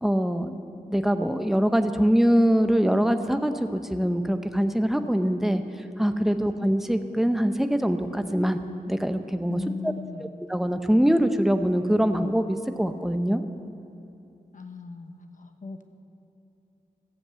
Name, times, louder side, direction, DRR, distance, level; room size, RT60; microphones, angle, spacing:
voice 1, 0.0-5.6 6.0-8.6 8.9-9.9 10.5-13.4, equal, ahead, 8 dB, 0.7 m, -23 dB
voice 2, 9.5-10.3 14.5-15.8, left 4 dB, 60° left, 6 dB, 1.0 m, -38 dB
13.5 x 7.3 x 8.1 m, 2.7 s
cardioid pair, 60°, 15 cm